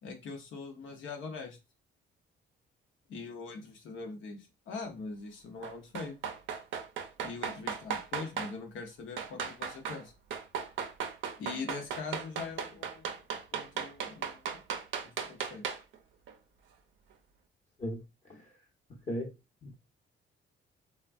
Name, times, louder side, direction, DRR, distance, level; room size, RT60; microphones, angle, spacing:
voice 1, 0.0-1.6 3.1-6.1 7.2-10.1 11.4-13.2 13.5-14.6 15.2-15.6, left 4 dB, 75° left, 0.8 m, -42 dB
sound 1, 5.6-8.5 9.2-10.0 10.3-16.0 16.3-16.4, right 7 dB, 75° right, 0.5 m, -36 dB
voice 2, 17.8-18.5 19.1-19.3 19.6-19.7, equal, 40° left, 0.9 m, -37 dB
3.3 x 2.2 x 2.4 m
cardioid pair, 90°, 20 cm